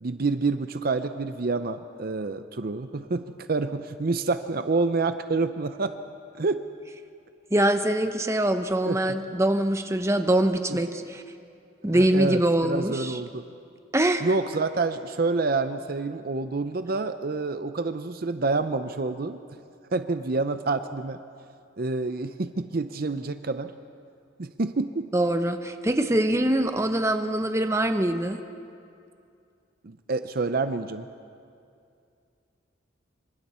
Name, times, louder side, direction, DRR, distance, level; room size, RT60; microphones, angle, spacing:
voice 1, 0.0-6.0 6.4-6.6 8.8-9.0 10.7-10.8 11.9-13.4 14.2-19.4 19.9-21.2 21.8-23.7 24.4-25.1 29.8-31.1, right 3 dB, 50° right, 10 dB, 0.6 m, -28 dB
voice 2, 7.5-11.2 11.8-13.2 13.9-14.3 25.1-28.4, right 1 dB, 15° right, 7 dB, 0.8 m, -23 dB
26.5 x 25.0 x 4.3 m, 2.5 s
head